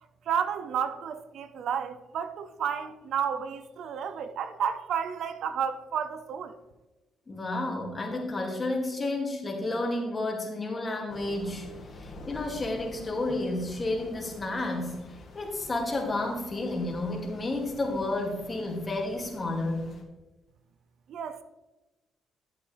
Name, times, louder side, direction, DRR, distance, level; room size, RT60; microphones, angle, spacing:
voice 1, 0.3-6.6 21.1-21.4, right 7 dB, 70° right, 0.6 m, -31 dB
voice 2, 7.3-11.7 11.9-15.0 15.3-19.9, left 2 dB, 30° left, 2.4 m, -31 dB
Thunder / Rain, 11.1-20.0, left 2 dB, 50° left, 1.9 m, -47 dB
12.0 x 8.0 x 3.4 m
cardioid pair, 90°, 0 cm